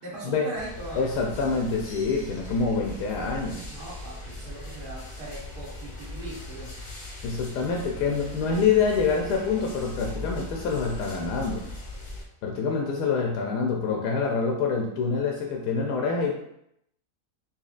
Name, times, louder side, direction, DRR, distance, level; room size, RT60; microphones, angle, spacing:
voice 1, 0.0-1.0 3.7-6.7, right 1 dB, 70° right, -7 dB, 1.5 m, -40 dB
sound 1, 0.5-12.2, left 1 dB, 40° left, 0.6 m, -39 dB
voice 2, 0.9-3.6 7.2-11.6 12.4-16.4, left 5 dB, 90° left, 0 dB, 1.1 m, -26 dB
4.1 x 2.9 x 2.4 m, 0.76 s
omnidirectional pair, 1.7 m